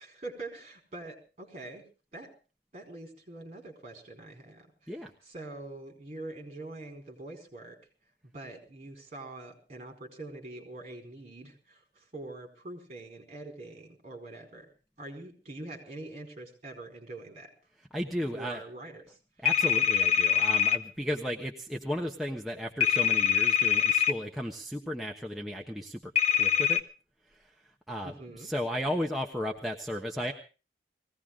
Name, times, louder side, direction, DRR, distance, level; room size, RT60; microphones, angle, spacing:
voice 1, 0.0-1.8 2.1-2.3 2.7-4.9 5.2-7.8 8.2-14.7 15.0-17.5 18.3-19.2 28.0-28.5, right 2 dB, 35° right, 3 dB, 4.8 m, -44 dB
voice 2, 17.9-18.6 19.4-26.8 27.3-27.5 27.9-30.3, equal, ahead, -1 dB, 1.1 m, -34 dB
sound 1, 19.5-20.8 22.8-24.1 26.2-26.8, left 9 dB, 35° left, 0.9 m, -24 dB
20.5 x 16.5 x 3.7 m, 0.35 s
head